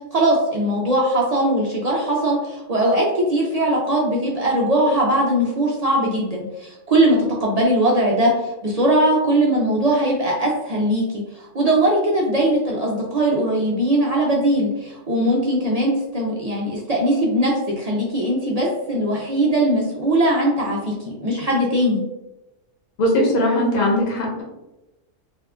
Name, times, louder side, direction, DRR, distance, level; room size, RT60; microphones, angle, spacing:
voice 1, 0.1-8.3 8.6-22.0, right 1 dB, 60° right, -3 dB, 0.4 m, -20 dB
voice 2, 23.0-24.4, left 1 dB, 50° left, -3 dB, 1.0 m, -19 dB
2.7 x 2.3 x 3.4 m, 0.96 s
omnidirectional pair, 1.3 m